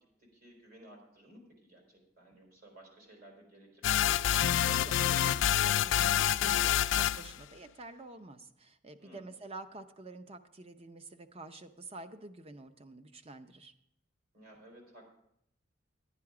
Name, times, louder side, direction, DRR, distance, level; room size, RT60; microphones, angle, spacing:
voice 1, 0.2-4.0 9.0-9.4 14.3-15.0, right 1 dB, 50° right, 0 dB, 3.9 m, -56 dB
sound 1, 3.8-7.3, left 11 dB, 65° left, 0.3 m, -27 dB
voice 2, 4.3-13.7, right 2 dB, 30° right, 9 dB, 0.7 m, -48 dB
11.5 x 9.8 x 4.9 m, 0.76 s
head